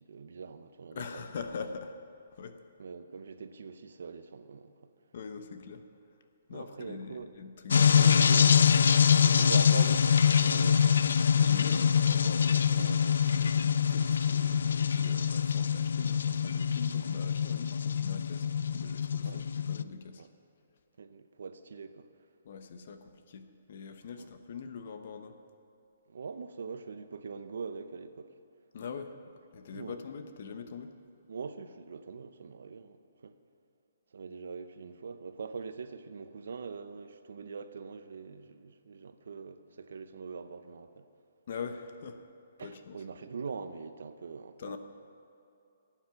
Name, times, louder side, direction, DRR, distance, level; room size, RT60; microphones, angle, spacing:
voice 1, 0.0-1.3 2.8-4.7 6.5-7.3 7.7-8.6 9.2-11.0 12.7-13.3 19.2-19.4 20.2-20.3 21.0-22.1 24.2-24.3 26.1-28.3 29.7-30.0 31.3-33.4 34.1-41.1 42.6-44.8, right 5 dB, 70° right, 0.7 m, -43 dB
voice 2, 0.9-2.0 2.3-2.6 5.1-5.8 6.5-8.3 11.3-12.9 13.1-18.5 18.7-20.3 22.4-25.4 28.7-29.2 29.5-30.9 41.5-42.3 42.6-43.0 44.6-44.8, left 5 dB, 45° left, 0.9 m, -42 dB
sound 1, 7.7-19.8, left 7 dB, 70° left, 0.3 m, -25 dB
15.5 x 9.0 x 5.9 m
hypercardioid pair, 170°, 0 cm